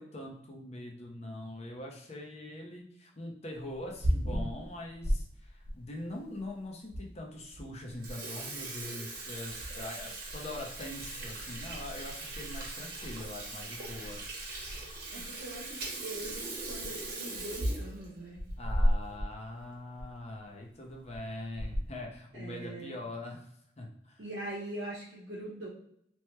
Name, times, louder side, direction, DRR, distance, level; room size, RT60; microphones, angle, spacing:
voice 1, 0.0-14.2 18.6-23.5 23.8-24.2, left 1 dB, 40° left, 0 dB, 0.6 m, -43 dB
Water tap faucet / Sink (filling or washing), 3.7-5.2 5.7-5.8 6.5-6.6 6.9-7.0 7.4-7.6 7.9-19.3 19.6-19.7 20.0-20.1 20.9-21.2 21.6-22.0, equal, 60° right, 1.0 m, -35 dB
voice 2, 15.1-18.4 22.3-23.0 24.2-25.7, right 1 dB, 80° right, -6 dB, 0.7 m, -42 dB
3.0 x 2.1 x 3.1 m, 0.71 s
head